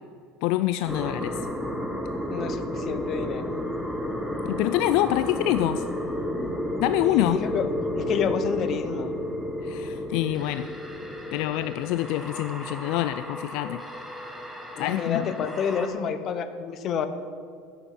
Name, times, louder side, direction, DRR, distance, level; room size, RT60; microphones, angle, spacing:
voice 1, 0.4-1.4 4.4-5.8 6.8-7.4 9.6-10.7 11.3-13.8 14.8-15.3, left 15 dB, 60° left, 12 dB, 0.3 m, -26 dB
sound 1, 0.9-15.9, left 1 dB, ahead, 1.2 m, -32 dB
voice 2, 2.3-3.6 7.0-7.7 8.0-9.1 14.8-17.1, left 7 dB, 35° left, 10 dB, 0.8 m, -29 dB
10.5 x 7.0 x 9.2 m, 2.3 s
cardioid pair, 155°, 0 cm